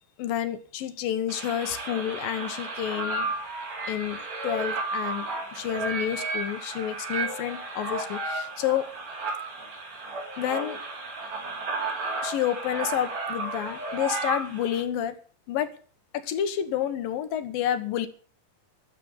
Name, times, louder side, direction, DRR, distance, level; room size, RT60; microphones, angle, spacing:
voice 1, 0.2-3.3 3.9-8.9 10.4-10.8 12.2-15.2 15.5-15.7 16.1-18.1, left 10 dB, 70° left, 11 dB, 2.8 m, -29 dB
sound 1, 1.3-14.8, right 3 dB, 65° right, 5.5 m, -33 dB
13.0 x 7.0 x 9.6 m, 0.41 s
omnidirectional pair, 4.6 m